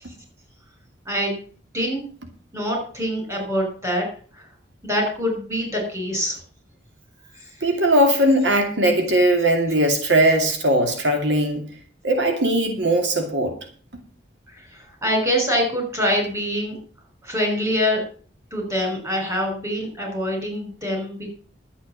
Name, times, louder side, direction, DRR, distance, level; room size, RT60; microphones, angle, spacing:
voice 1, 1.1-1.4 1.7-2.0 2.5-4.1 4.8-6.4 14.7-16.8 17.2-18.0 18.5-21.4, equal, 20° right, 6.1 m, -24 dB
voice 2, 7.6-11.6 12.0-13.6, right 1 dB, 90° right, 2.6 m, -19 dB
11.5 x 8.5 x 7.4 m
head